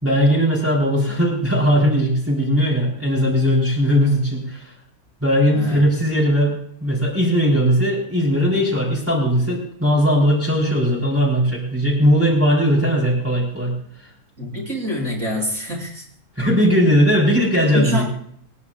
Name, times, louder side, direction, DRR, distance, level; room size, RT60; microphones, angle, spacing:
voice 1, 0.0-4.7 5.2-6.5 6.8-14.1 16.4-18.1, equal, 10° right, -5 dB, 4.0 m, -18 dB
voice 2, 14.4-16.0 17.7-18.1, left 1 dB, 60° right, -2 dB, 6.7 m, -26 dB
27.5 x 11.0 x 2.4 m, 0.67 s
omnidirectional pair, 1.6 m